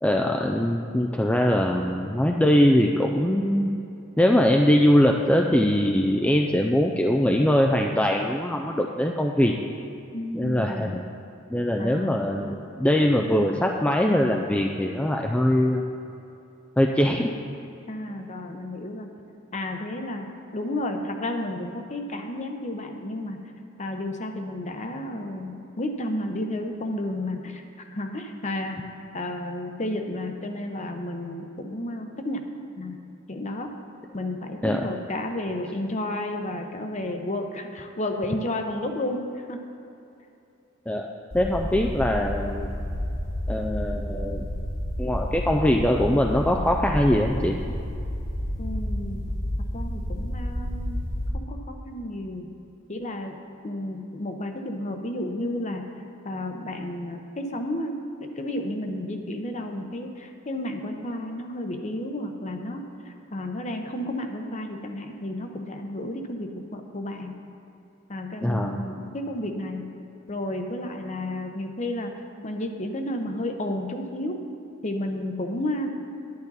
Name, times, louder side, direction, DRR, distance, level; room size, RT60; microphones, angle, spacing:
voice 1, 0.0-3.7 4.2-9.5 10.3-11.0 11.5-15.8 16.8-17.3 34.6-34.9 40.9-41.0 41.3-42.7 43.5-44.5 45.0-47.5 68.4-68.7, left 1 dB, 5° left, 1 dB, 0.4 m, -22 dB
voice 2, 10.1-10.9 11.8-12.6 17.9-19.1 19.5-23.4 23.8-27.6 27.9-28.8 29.1-32.4 32.8-33.0 33.3-33.7 34.1-39.6 48.6-49.2 49.7-51.0 51.3-52.5 52.9-53.4 53.6-55.8 56.2-67.3 68.1-69.9 70.3-72.1 72.4-74.4 74.8-75.9, left 1 dB, 35° left, 4 dB, 0.8 m, -32 dB
sound 1, 41.3-51.3, equal, 90° left, 2.3 m, -30 dB
10.5 x 10.5 x 4.1 m, 2.7 s
head